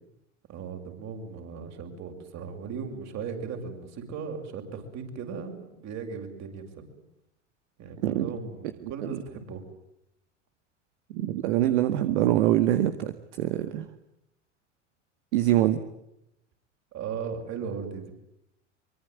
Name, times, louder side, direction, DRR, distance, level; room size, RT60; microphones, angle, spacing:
voice 1, 0.5-6.7 7.8-9.6 16.9-18.1, right 6 dB, 45° right, 4 dB, 7.1 m, -37 dB
voice 2, 8.8-9.2 11.1-13.9 15.3-15.8, right 13 dB, 65° right, 10 dB, 1.9 m, -24 dB
25.0 x 23.5 x 9.5 m, 0.83 s
hypercardioid pair, 80°, 37 cm